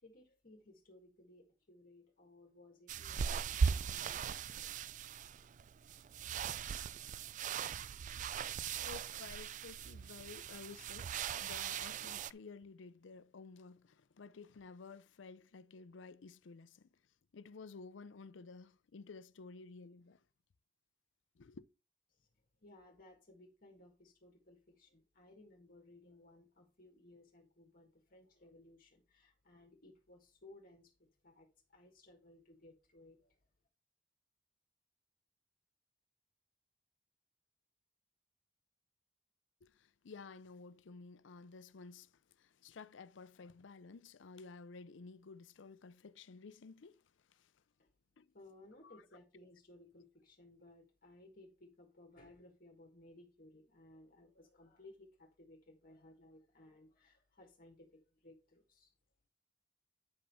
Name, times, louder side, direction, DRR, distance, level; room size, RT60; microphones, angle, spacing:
voice 1, 0.0-4.7 5.4-5.5 6.2-6.4 22.1-22.3 22.6-33.3 47.8-47.9 48.3-58.9, left 2 dB, 50° left, 1.6 m, -61 dB
sound 1, 2.9-12.3, right 6 dB, 40° right, 0.3 m, -39 dB
voice 2, 8.8-16.9 17.3-20.2 21.4-21.6 39.6-42.1 42.4-47.0 47.3-47.5 48.2-48.3 48.8-49.0, left 4 dB, 80° left, 0.5 m, -53 dB
9.9 x 5.4 x 4.1 m
head